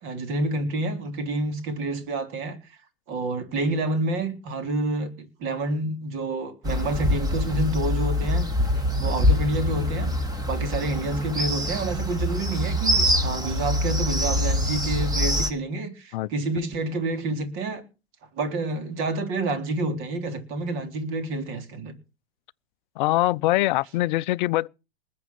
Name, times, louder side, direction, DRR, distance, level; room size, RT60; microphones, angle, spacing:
voice 1, 0.0-2.6 3.1-5.1 5.4-8.5 8.7-10.1 10.5-17.8 18.4-21.9, right 2 dB, 40° right, 3.8 m, -28 dB
sound 1, 6.6-15.5, left 1 dB, 10° right, 2.5 m, -24 dB
voice 2, 23.0-24.7, left 18 dB, 50° left, 0.7 m, -23 dB
20.0 x 8.6 x 6.1 m
hypercardioid pair, 110°, 32 cm